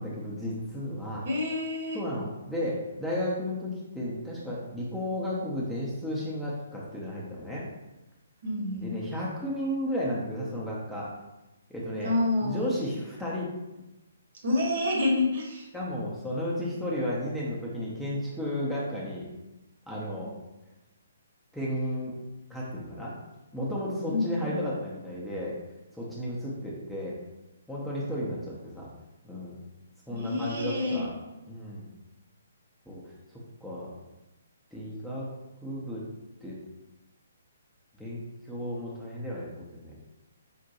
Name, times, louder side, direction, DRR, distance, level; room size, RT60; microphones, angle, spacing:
voice 1, 0.0-1.3 1.9-7.7 8.8-11.1 11.7-13.5 15.7-19.3 19.9-20.3 21.5-22.1 22.5-23.1 23.5-25.5 25.9-27.1 27.7-28.9 29.2-29.6 30.1-31.1 31.5-31.9 32.9-33.9 34.7-35.3 35.6-36.0 36.4-36.6 38.0-40.0, left 1 dB, ahead, -7 dB, 0.6 m, -33 dB
voice 2, 1.2-2.0 8.4-8.9 12.0-12.7 14.4-15.7 24.1-24.5 30.1-31.0, left 2 dB, 50° right, -2 dB, 1.0 m, -28 dB
5.1 x 2.1 x 2.8 m, 0.99 s
figure-of-eight pair, 130°, 0 cm